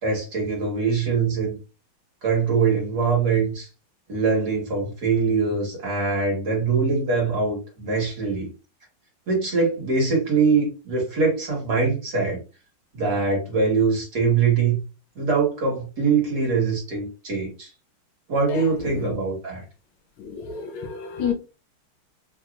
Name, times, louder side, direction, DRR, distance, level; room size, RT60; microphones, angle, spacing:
voice 1, 0.0-1.6 2.2-3.7 4.1-8.5 9.3-12.4 12.9-14.8 15.2-17.7 18.3-19.6, right 4 dB, 50° right, 2.0 m, -23 dB
voice 2, 18.5-19.1 20.2-21.3, left 7 dB, 75° left, 1.5 m, -30 dB
3.9 x 2.8 x 2.4 m
omnidirectional pair, 2.3 m